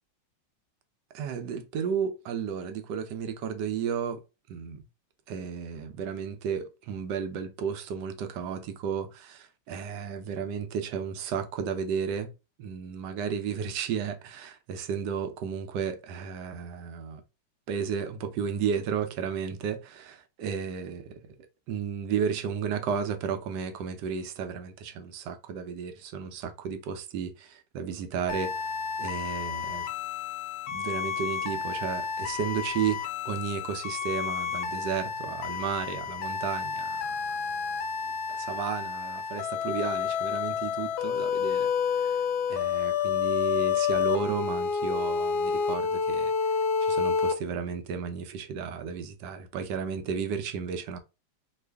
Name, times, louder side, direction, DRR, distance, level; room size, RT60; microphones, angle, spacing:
voice 1, 1.1-4.2 4.5-4.8 5.3-12.3 12.6-17.2 17.7-21.2 21.7-28.6 29.0-29.9 30.7-37.6 38.3-42.2 42.5-46.3 46.8-51.0, right 7 dB, 75° right, 1.1 m, -33 dB
sound 1, 28.3-47.3, left 6 dB, 70° left, 1.0 m, -30 dB
3.0 x 2.4 x 3.4 m
omnidirectional pair, 2.0 m